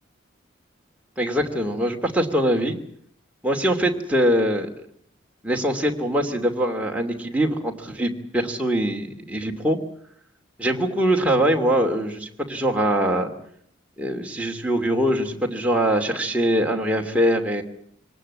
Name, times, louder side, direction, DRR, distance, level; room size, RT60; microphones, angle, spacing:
voice 1, 1.2-2.8 3.4-4.7 5.4-9.8 10.6-13.3 14.0-17.6, right 1 dB, 5° right, 1 dB, 2.6 m, -23 dB
24.0 x 19.0 x 8.6 m, 0.66 s
head